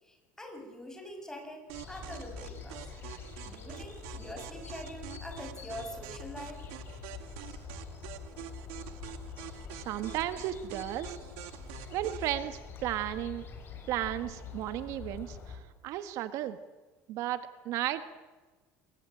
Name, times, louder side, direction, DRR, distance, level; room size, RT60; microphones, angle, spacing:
voice 1, 0.0-2.9 3.4-6.7, left 1 dB, 10° left, 5 dB, 6.7 m, -44 dB
sound 1, 1.7-15.6, left 6 dB, 40° left, 6.9 m, -45 dB
sound 2, 1.7-12.3, right 14 dB, 80° right, 2.2 m, -46 dB
voice 2, 9.7-11.2 11.9-13.4 13.9-16.6 17.1-18.2, right 13 dB, 60° right, 11 dB, 1.6 m, -34 dB
28.0 x 22.5 x 9.1 m, 1.3 s
cardioid pair, 125°, 6 cm